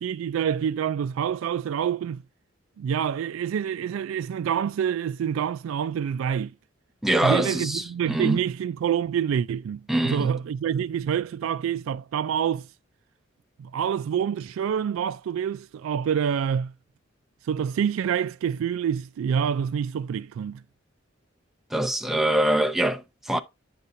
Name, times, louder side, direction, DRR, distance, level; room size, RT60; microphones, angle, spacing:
voice 1, 0.0-2.2 2.8-6.5 7.2-12.7 13.6-16.7 17.4-20.6, right 8 dB, 80° right, 0.3 m, -27 dB
voice 2, 7.0-8.4 9.9-10.3 21.7-23.4, right 1 dB, ahead, 0.6 m, -24 dB
9.7 x 6.5 x 2.6 m
head